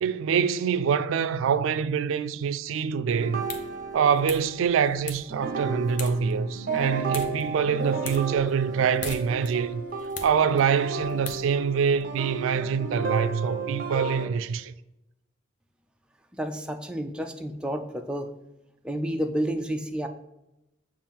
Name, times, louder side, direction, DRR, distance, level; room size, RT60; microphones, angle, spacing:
voice 1, 0.0-3.4 3.9-9.8 10.2-14.7, right 7 dB, 90° right, 0.3 m, -25 dB
sound 1, 3.1-4.9 5.3-14.3, right 3 dB, 45° right, 0.7 m, -33 dB
sound 2, 3.2-12.0, left 5 dB, 40° left, 0.7 m, -43 dB
voice 2, 16.3-18.3 18.8-20.1, equal, 5° right, 0.3 m, -30 dB
7.2 x 2.5 x 5.5 m
head